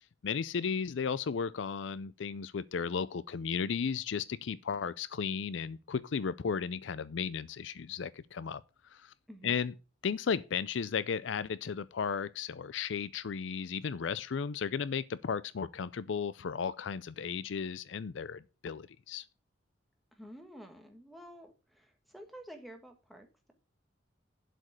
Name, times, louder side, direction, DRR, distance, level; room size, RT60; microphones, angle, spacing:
voice 1, 0.2-8.6 8.9-9.1 9.4-9.7 10.0-19.3, left 6 dB, 65° left, 0.4 m, -35 dB
voice 2, 20.1-23.5, equal, ahead, 1.5 m, -50 dB
7.8 x 5.2 x 7.3 m
head